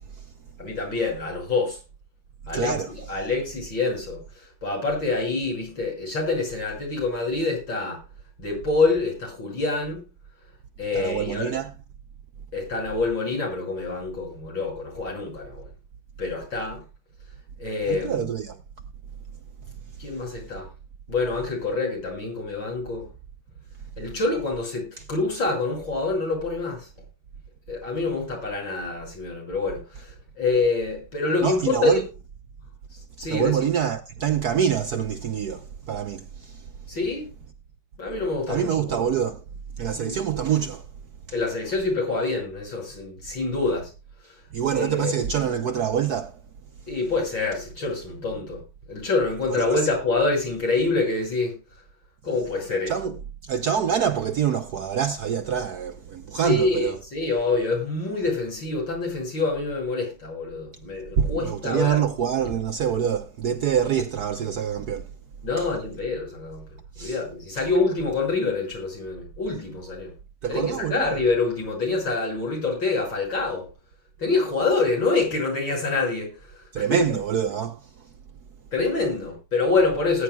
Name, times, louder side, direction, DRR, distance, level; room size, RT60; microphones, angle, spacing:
voice 1, 0.6-1.8 2.5-4.2 4.6-8.0 8.4-10.0 10.8-11.6 12.5-15.7 16.2-16.8 17.6-18.3 20.0-20.7 21.1-23.1 24.0-26.9 27.7-32.0 33.2-33.7 36.9-37.3 38.0-39.0 39.9-40.2 41.3-43.9 44.2-44.3 44.7-45.1 46.9-48.6 48.9-51.6 52.2-53.1 56.4-62.0 62.4-62.5 65.4-66.6 67.0-70.1 70.5-73.7 74.2-77.1 78.7-80.2, left 3 dB, 65° left, 6.7 m, -26 dB
voice 2, 2.5-2.9 10.9-11.7 17.9-18.6 31.4-32.0 33.3-36.6 38.5-39.4 39.8-40.8 44.5-46.4 49.5-49.7 52.9-53.2 53.4-57.0 61.2-65.1 65.6-65.7 67.0-67.2 70.4-71.2 76.7-78.1, right 8 dB, 65° right, 1.0 m, -25 dB
19.5 x 10.0 x 2.3 m
omnidirectional pair, 2.3 m